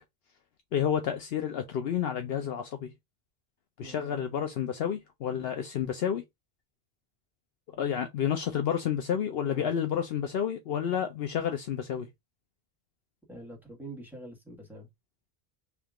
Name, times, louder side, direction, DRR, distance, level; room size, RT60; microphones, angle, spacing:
voice 1, 0.7-2.9 3.8-6.2 7.7-12.1, left 8 dB, 75° left, 0.9 m, -30 dB
voice 2, 3.8-4.2 9.5-9.7 13.3-14.9, right 1 dB, ahead, 1.4 m, -45 dB
3.6 x 2.8 x 3.5 m
omnidirectional pair, 1.0 m